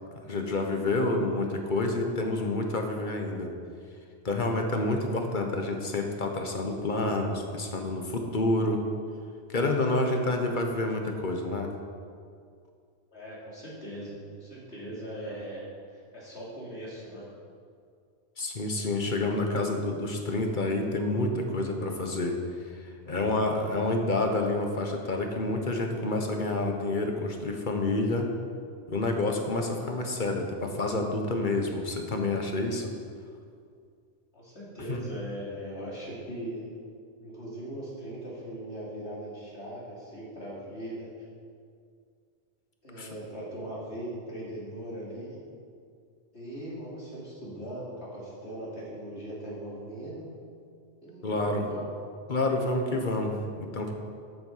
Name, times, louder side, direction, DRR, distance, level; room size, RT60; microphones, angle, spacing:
voice 1, 0.2-3.5 4.2-8.8 9.5-11.7 18.4-22.4 22.7-28.3 28.9-32.9 34.9-35.0 42.9-43.1 51.2-51.6 52.3-53.9, left 2 dB, 45° left, 3 dB, 1.4 m, -28 dB
voice 2, 13.1-14.2 14.4-15.6 15.9-17.3 34.3-36.7 37.2-41.1 42.8-45.4 46.3-50.3 51.0-52.0, right 1 dB, 75° left, -6 dB, 3.6 m, -39 dB
13.5 x 7.9 x 5.7 m, 2.2 s
omnidirectional pair, 1.1 m